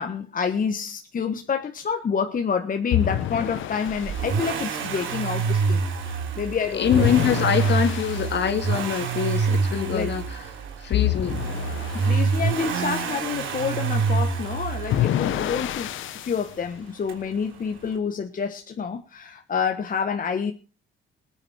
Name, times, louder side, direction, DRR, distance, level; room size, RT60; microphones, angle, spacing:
voice 1, 0.0-7.0 9.9-10.1 11.9-20.5, left 6 dB, 45° left, 6 dB, 1.5 m, -28 dB
sound 1, 2.9-4.3 6.9-8.4 10.9-12.3 14.9-16.5, left 13 dB, 80° left, 1.0 m, -27 dB
Accelerating revving vroom, 3.9-15.8 17.1-17.2, right 5 dB, 80° right, 3.3 m, -27 dB
voice 2, 6.7-10.2 10.8-11.4, left 8 dB, 60° left, 8 dB, 2.4 m, -24 dB
19.5 x 9.9 x 4.3 m, 0.36 s
cardioid pair, 90°, 20 cm